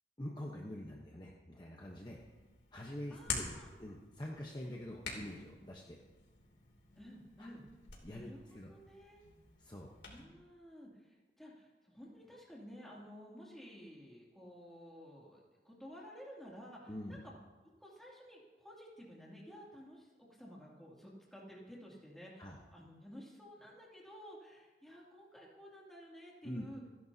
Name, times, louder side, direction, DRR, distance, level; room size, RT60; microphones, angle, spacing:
voice 1, 0.2-2.2 2.7-3.5 3.8-6.0 7.4-7.5 8.0-8.7 9.6-9.9 16.9-17.2 22.4-22.6 26.4-26.7, left 1 dB, 25° left, -1 dB, 1.0 m, -45 dB
Hands, 1.8-10.2, left 5 dB, 90° left, 2.9 m, -48 dB
voice 2, 3.1-3.7 7.0-7.6 8.1-9.2 10.1-17.2 17.8-26.8, equal, ahead, -5 dB, 2.7 m, -53 dB
28.0 x 11.0 x 2.8 m, 1.2 s
head